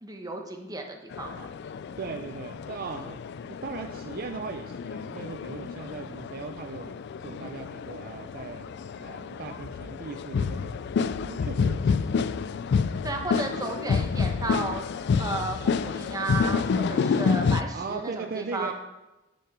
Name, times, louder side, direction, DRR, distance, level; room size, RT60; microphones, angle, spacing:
voice 1, 0.0-1.5 13.0-14.9 15.2-18.7, right 2 dB, 20° right, 3 dB, 1.0 m, -33 dB
sound 1, 1.1-17.6, left 5 dB, 55° left, 0.3 m, -29 dB
voice 2, 2.0-3.2 3.5-12.1 12.7-12.8 17.7-18.7, right 4 dB, 45° right, 6 dB, 0.4 m, -38 dB
9.7 x 5.6 x 4.7 m, 1.0 s
head